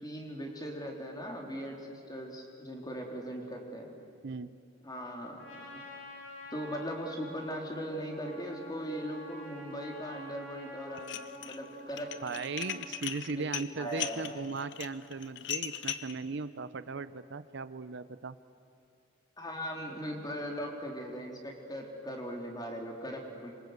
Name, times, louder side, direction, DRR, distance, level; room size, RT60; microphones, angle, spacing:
voice 1, 0.0-3.9 4.8-5.4 5.7-5.8 6.5-12.1 13.3-13.5 13.8-14.5 19.4-23.5, equal, 20° left, 1 dB, 3.7 m, -39 dB
Trumpet, 5.4-13.0, left 1 dB, 85° left, 7.1 m, -48 dB
Dishes pots and pans, 11.0-11.6 11.9-16.1, left 10 dB, 65° left, 1.0 m, -38 dB
voice 2, 12.2-18.4, right 4 dB, 65° right, 14 dB, 0.7 m, -38 dB
27.0 x 24.0 x 8.1 m, 2.5 s
head